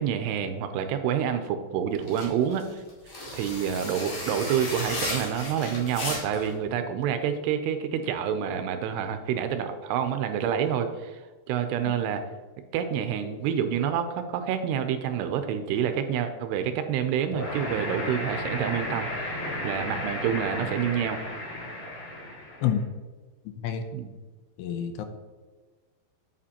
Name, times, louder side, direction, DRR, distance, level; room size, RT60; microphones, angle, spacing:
voice 1, 0.0-2.8 3.3-11.2 11.5-12.2 12.7-19.3 19.6-21.2 23.9-24.1, right 8 dB, 80° right, 7 dB, 2.5 m, -28 dB
sound 1, 2.0-6.5, left 1 dB, 45° left, 2.7 m, -35 dB
sound 2, 17.3-22.7, left 1 dB, 65° left, 4.0 m, -33 dB
voice 2, 23.5-23.9 24.6-25.1, left 9 dB, 80° left, 7 dB, 2.7 m, -28 dB
8.3 x 7.4 x 2.8 m, 1.3 s
omnidirectional pair, 5.0 m